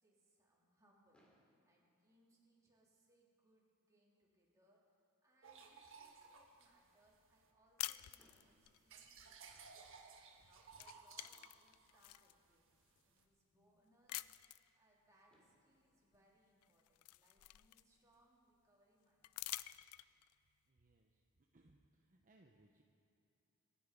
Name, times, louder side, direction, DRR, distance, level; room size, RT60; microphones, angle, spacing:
voice 1, 0.0-12.7 13.0-14.3 14.7-19.5, right 1 dB, 15° right, -5 dB, 3.3 m, -75 dB
Fireworks, 1.1-3.2 4.0-4.1 4.3-4.5 4.8-4.9 8.2-10.0 11.7-11.8 14.8-14.9 15.3-17.6, equal, 5° left, 2.6 m, -78 dB
sound 1, 5.4-7.5 7.9-13.2, right 5 dB, 60° right, 1.6 m, -60 dB
sound 2, 7.8-8.8 10.2-10.4 10.7-12.3 13.0-13.1 14.1-14.7 16.1-16.2 16.6-18.2 19.2-20.3, left 17 dB, 75° left, 0.4 m, -48 dB
voice 2, 20.7-22.8, right 2 dB, 40° right, 2 dB, 0.8 m, -70 dB
26.5 x 10.0 x 5.3 m, 2.7 s
head